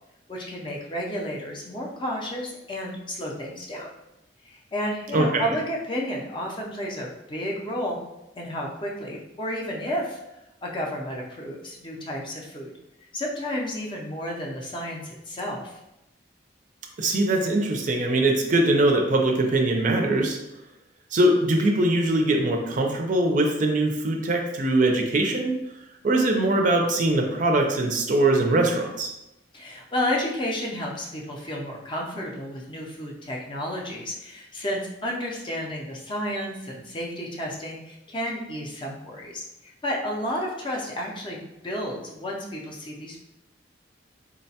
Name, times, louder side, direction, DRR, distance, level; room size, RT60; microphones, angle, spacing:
voice 1, 0.3-3.9 4.4-8.0 8.3-10.2 10.6-12.7 13.1-15.8 29.5-43.2, equal, 25° left, -2 dB, 0.5 m, -31 dB
voice 2, 5.1-5.5 17.0-20.4 21.1-25.6 26.0-29.1, right 2 dB, 45° right, 2 dB, 0.4 m, -22 dB
3.8 x 2.1 x 2.7 m, 0.90 s
head